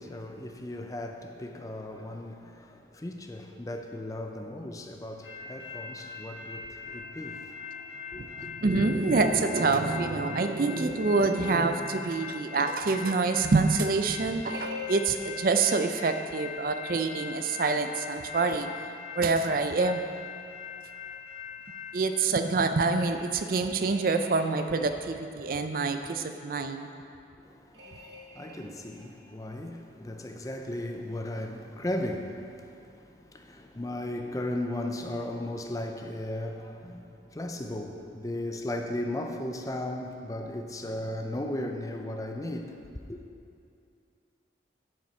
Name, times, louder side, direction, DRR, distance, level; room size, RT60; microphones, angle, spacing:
voice 1, 0.0-7.5 8.1-8.5 27.4-42.8 43.1-43.2, left 1 dB, 20° left, 0.5 m, -36 dB
sound 1, 5.2-21.9, left 6 dB, 85° left, 1.3 m, -42 dB
voice 2, 8.2-18.7 19.2-20.0 21.9-26.9, right 3 dB, 50° right, 0.4 m, -26 dB
sound 2, 14.5-16.9 23.0-25.1 27.7-29.3, left 3 dB, 75° right, 1.5 m, -45 dB
11.5 x 6.2 x 4.3 m
head